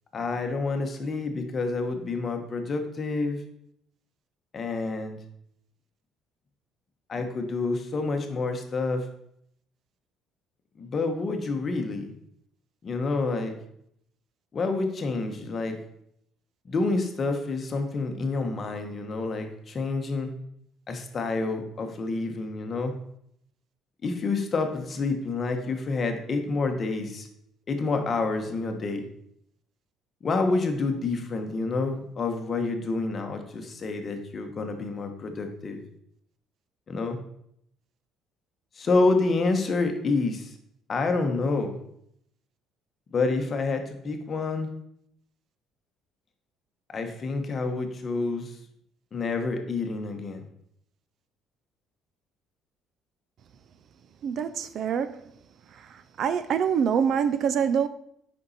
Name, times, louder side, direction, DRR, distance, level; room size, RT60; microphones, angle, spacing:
voice 1, 0.1-3.4 4.5-5.2 7.1-9.1 10.8-12.1 12.8-13.5 14.5-15.7 16.6-20.3 20.9-22.9 24.0-27.3 27.7-29.0 30.2-35.8 36.9-37.2 38.8-40.5 40.9-41.8 43.1-44.7 46.9-48.5 49.1-50.4, left 3 dB, 30° left, 1.1 m, -28 dB
voice 2, 54.2-55.2 56.2-57.9, right 7 dB, 50° right, 0.4 m, -25 dB
8.6 x 5.4 x 4.1 m
cardioid pair, 150°, 0 cm